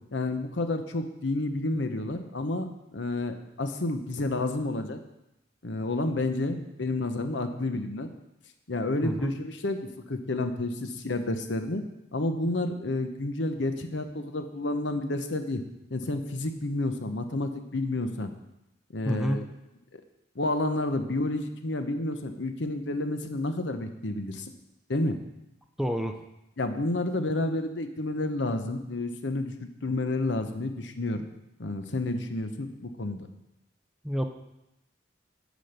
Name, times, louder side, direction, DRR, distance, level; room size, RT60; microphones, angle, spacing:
voice 1, 0.1-5.0 5.6-8.1 8.7-11.8 12.1-15.6 15.9-18.3 18.9-19.5 19.9-20.0 20.4-24.5 24.9-25.2 26.6-31.2 31.6-33.3, left 2 dB, 70° left, 7 dB, 0.9 m, -30 dB
voice 2, 9.0-9.4 19.1-19.5 25.8-26.1 34.0-34.2, equal, ahead, 5 dB, 0.5 m, -28 dB
10.0 x 5.2 x 6.6 m, 0.89 s
head